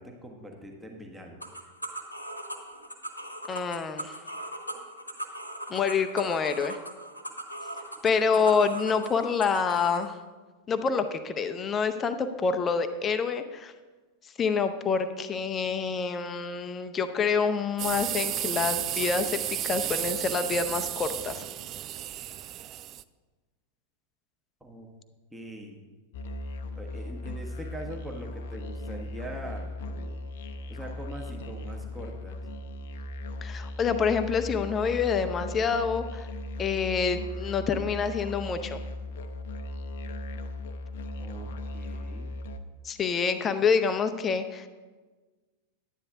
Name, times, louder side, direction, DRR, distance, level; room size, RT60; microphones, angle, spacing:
voice 1, 0.0-1.4 24.6-24.9 25.3-25.8 26.7-30.2 30.7-32.4 41.2-42.3, right 1 dB, 5° right, 1 dB, 1.3 m, -42 dB
sound 1, 1.4-10.1, right 1 dB, 85° left, 1.2 m, -39 dB
voice 2, 3.5-4.2 5.7-6.8 8.0-10.2 10.7-13.7 14.4-21.4 33.4-36.3 36.6-38.8 42.8-44.7, left 5 dB, 25° left, 9 dB, 0.7 m, -27 dB
sound 2, 17.8-23.0, right 12 dB, 35° right, 0.3 m, -33 dB
Musical instrument, 26.1-42.6, left 1 dB, 55° left, 0.7 m, -37 dB
11.0 x 9.8 x 3.5 m, 1.3 s
figure-of-eight pair, 90°, 0 cm